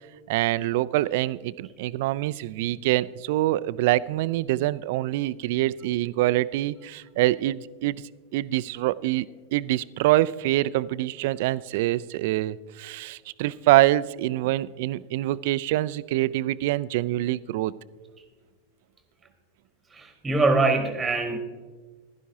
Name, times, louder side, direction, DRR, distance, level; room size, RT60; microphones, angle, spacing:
voice 1, 0.3-8.0 8.3-9.3 9.5-17.7, right 16 dB, 55° right, 19 dB, 0.3 m, -25 dB
voice 2, 19.9-21.4, right 3 dB, 10° right, 7 dB, 1.1 m, -23 dB
15.5 x 11.5 x 2.8 m, 1.4 s
figure-of-eight pair, 90°, 0 cm